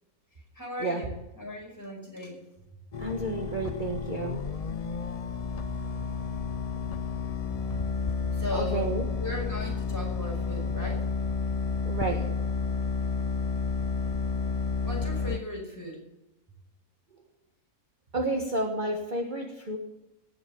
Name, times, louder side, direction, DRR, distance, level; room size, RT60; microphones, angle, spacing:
voice 1, 0.6-2.4 7.7-7.8 8.3-8.9 9.2-11.0 14.8-16.0, left 1 dB, 10° left, -1 dB, 5.4 m, -37 dB
sound 1, 2.9-15.4, left 5 dB, 70° left, 0.3 m, -31 dB
voice 2, 3.0-4.4 8.5-9.0 11.8-12.3 18.1-19.8, right 2 dB, 35° right, 1 dB, 1.6 m, -31 dB
18.5 x 8.0 x 7.1 m, 0.96 s
omnidirectional pair, 1.5 m